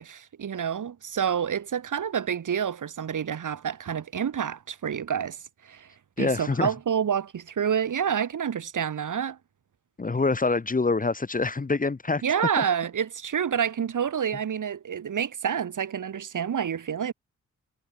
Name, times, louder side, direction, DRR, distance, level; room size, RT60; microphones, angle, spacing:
voice 1, 0.0-5.4 5.6-5.9 6.2-9.4 12.2-17.1, right 8 dB, 75° right, 2.0 m, -28 dB
voice 2, 6.2-6.7 10.0-12.2 12.6-12.7, left 3 dB, 25° left, 1.0 m, -25 dB
cardioid pair, 80°, 31 cm